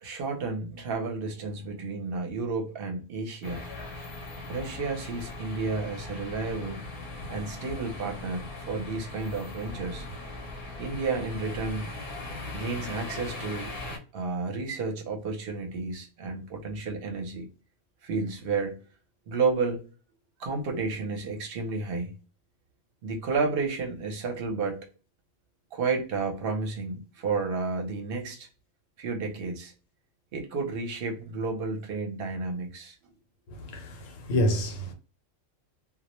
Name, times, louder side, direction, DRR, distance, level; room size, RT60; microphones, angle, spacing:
voice 1, 0.0-3.6 4.5-6.8 7.3-10.0 10.8-11.9 12.5-13.8 14.1-17.5 18.0-18.8 19.3-19.8 20.4-22.1 23.0-24.9 25.7-28.5 29.0-29.7 30.3-33.0, right 4 dB, 55° right, 0.8 m, -31 dB
sound 1, 3.4-14.0, left 2 dB, 55° left, 0.8 m, -39 dB
voice 2, 33.5-34.9, equal, 80° left, 1.0 m, -28 dB
2.2 x 2.0 x 2.9 m
omnidirectional pair, 1.3 m